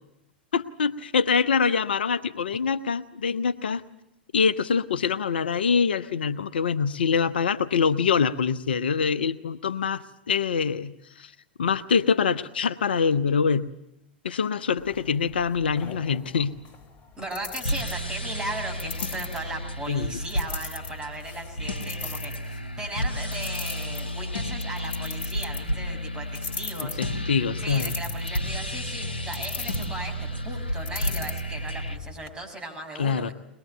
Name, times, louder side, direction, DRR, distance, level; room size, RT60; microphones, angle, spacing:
voice 1, 0.5-3.8 4.3-11.3 11.6-13.7 14.2-16.6 19.9-20.2 26.8-27.9 33.0-33.3, left 6 dB, 70° left, 12 dB, 0.8 m, -25 dB
sound 1, 14.8-32.3, left 5 dB, 30° left, 3.6 m, -41 dB
voice 2, 17.2-22.3 22.8-27.0 27.6-33.3, right 1 dB, 15° right, 4 dB, 6.1 m, -37 dB
sound 2, 17.6-32.0, equal, 85° left, 1.8 m, -32 dB
23.0 x 21.0 x 8.0 m, 0.84 s
figure-of-eight pair, 100°, 6 cm